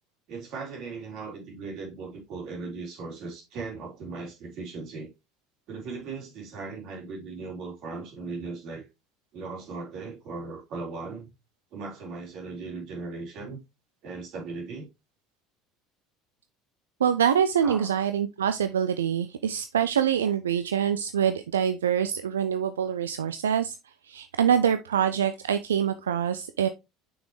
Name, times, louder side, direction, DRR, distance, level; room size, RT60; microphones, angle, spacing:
voice 1, 0.3-5.1 5.7-8.9 9.3-11.3 11.7-13.6 14.0-14.9 17.6-17.9, right 4 dB, 60° right, 3.5 m, -38 dB
voice 2, 17.0-23.8 24.0-26.7, right 8 dB, 85° right, 0.4 m, -25 dB
6.2 x 6.0 x 3.1 m
hypercardioid pair, 70°, 0 cm